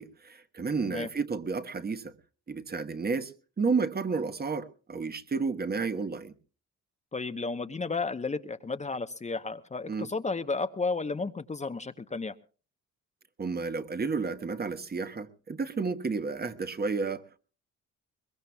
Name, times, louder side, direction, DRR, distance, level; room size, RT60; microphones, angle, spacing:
voice 1, 0.0-2.1 2.5-6.3 9.9-10.1 13.4-17.4, right 4 dB, 30° right, 1.2 m, -31 dB
voice 2, 7.1-12.3, left 3 dB, 25° left, 0.9 m, -33 dB
22.5 x 21.0 x 2.3 m
cardioid pair, 90°, 30 cm